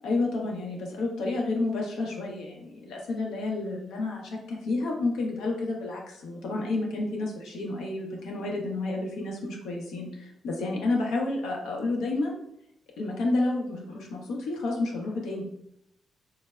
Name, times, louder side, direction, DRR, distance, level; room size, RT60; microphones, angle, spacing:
voice 1, 0.0-12.4 13.0-15.5, left 2 dB, 85° left, 0 dB, 0.6 m, -30 dB
3.1 x 2.0 x 2.3 m, 0.76 s
supercardioid pair, 60°, 0 cm